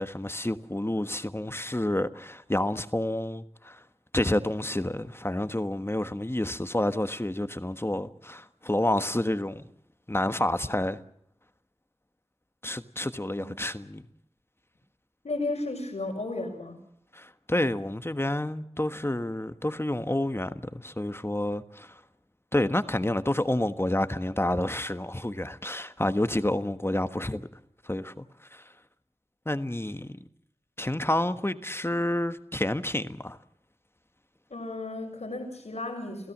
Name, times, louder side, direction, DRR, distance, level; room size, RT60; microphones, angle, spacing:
voice 1, 0.0-3.8 4.1-9.7 10.1-11.0 12.6-14.0 17.1-22.0 22.5-27.4 27.8-28.2 28.5-28.6 29.4-30.2 30.8-33.4, left 1 dB, 20° left, 1.4 m, -29 dB
voice 2, 15.2-16.8 34.5-36.3, left 2 dB, 85° left, 5.6 m, -34 dB
29.5 x 16.0 x 7.4 m
wide cardioid pair, 40°, 11 cm